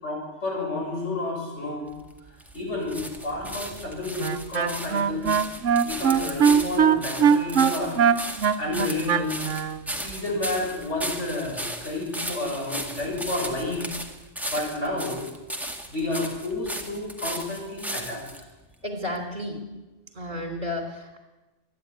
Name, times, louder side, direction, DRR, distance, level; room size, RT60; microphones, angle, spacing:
voice 1, 0.0-1.9 2.5-5.4 5.8-8.0 8.6-9.4 9.9-13.9 14.5-15.2 15.9-18.2, left 2 dB, 70° left, -2 dB, 7.9 m, -30 dB
sound 1, 1.9-18.4 19.1-19.2, right 1 dB, ahead, 2.1 m, -36 dB
Wind instrument woodwind instrument, 4.2-9.8, right 7 dB, 80° right, 1.3 m, -21 dB
voice 2, 18.8-19.6 20.2-21.2, left 1 dB, 40° right, 5 dB, 4.0 m, -32 dB
26.5 x 11.0 x 9.6 m, 1.1 s
omnidirectional pair, 1.3 m